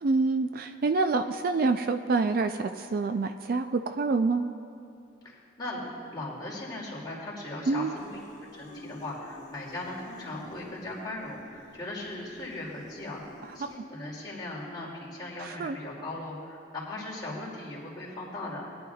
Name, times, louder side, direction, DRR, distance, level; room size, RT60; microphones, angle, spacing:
voice 1, 0.0-4.4 7.7-7.9 13.6-13.7 15.4-15.8, right 3 dB, 50° right, 8 dB, 0.3 m, -27 dB
voice 2, 5.2-5.8 6.1-18.7, left 2 dB, 20° left, -5 dB, 2.4 m, -38 dB
sound 1, 7.9-13.8, left 1 dB, 55° left, 1.4 m, -50 dB
20.5 x 10.5 x 2.3 m, 2.5 s
head